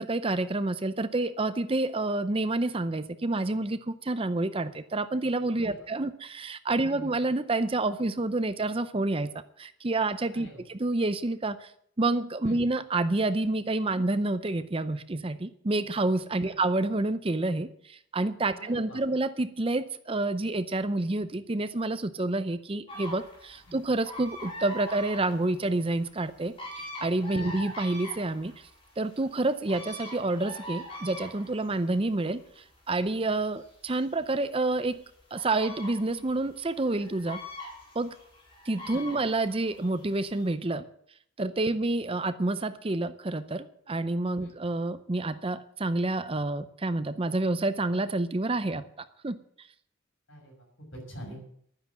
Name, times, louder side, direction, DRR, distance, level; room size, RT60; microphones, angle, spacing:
voice 1, 0.0-11.7 12.0-28.7 29.0-35.0 35.3-37.4 37.9-38.2 38.7-40.9 41.4-48.8 49.2-49.7, right 2 dB, 30° right, 12 dB, 0.6 m, -28 dB
voice 2, 6.8-7.2 10.3-10.7 12.4-12.6 16.4-16.6 18.5-19.0 23.7-23.8 27.3-27.7 38.9-39.2 41.7-41.8 44.4-44.6 50.3-51.4, equal, 70° left, 1 dB, 6.5 m, -46 dB
sound 1, 22.9-40.5, left 1 dB, 30° left, 4.5 m, -44 dB
12.0 x 9.8 x 7.3 m, 0.66 s
head